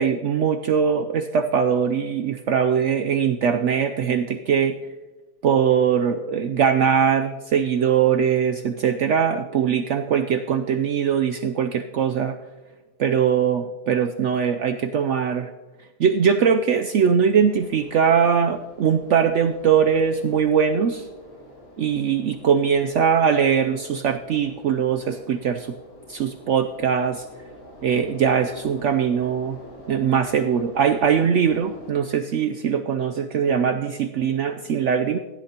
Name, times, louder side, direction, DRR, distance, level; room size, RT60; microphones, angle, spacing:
voice 1, 0.0-4.7 5.4-12.3 13.0-15.5 16.0-21.1 21.8-25.8 26.1-27.2 27.8-29.6 29.9-35.2, right 7 dB, 70° right, 8 dB, 0.7 m, -21 dB
sound 1, 17.5-31.9, equal, 80° left, 3.0 m, -45 dB
16.5 x 11.5 x 2.8 m, 1.2 s
omnidirectional pair, 1.8 m